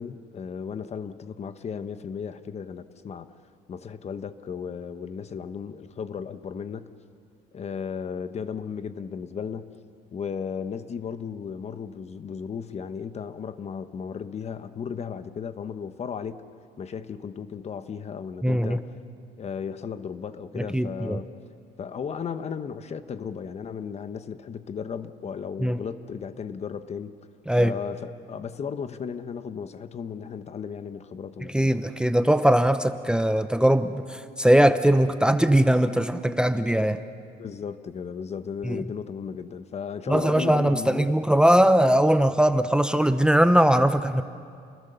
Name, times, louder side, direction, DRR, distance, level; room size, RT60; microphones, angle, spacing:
voice 1, 0.0-3.3 3.7-6.9 7.5-9.7 10.1-16.4 16.8-18.9 19.4-21.3 21.8-27.2 27.6-31.7 37.4-41.1, left 6 dB, 40° left, 11 dB, 1.0 m, -35 dB
voice 2, 18.4-18.8 20.6-21.2 25.6-25.8 27.5-27.8 31.5-37.0 38.6-38.8 40.1-44.2, right 1 dB, 5° right, 10 dB, 0.7 m, -20 dB
29.0 x 21.0 x 6.9 m, 2.3 s
cardioid pair, 110°, 17 cm